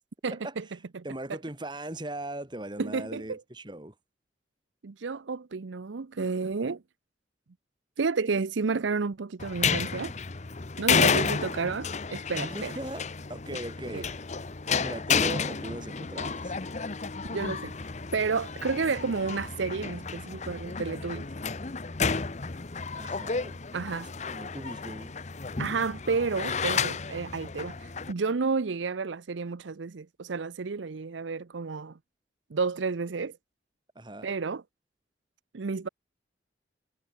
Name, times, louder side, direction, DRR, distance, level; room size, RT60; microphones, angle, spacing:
voice 1, 0.2-0.6 0.9-1.0 1.3-1.4 2.8-3.4 4.8-6.8 8.0-10.1 10.8-12.7 13.5-13.6 13.9-14.0 17.3-17.7 18.1-21.2 23.7-24.1 25.6-32.0 32.5-33.4 34.2-34.6 35.5-35.9, right 4 dB, 90° right, 0.6 m, -31 dB
voice 2, 1.0-3.9 12.4-14.1 14.8-16.6 22.9-23.6 24.0-25.1 34.0-34.3, right 1 dB, 25° right, 2.1 m, -39 dB
sound 1, 9.4-28.1, left 5 dB, 40° left, 0.9 m, -31 dB
head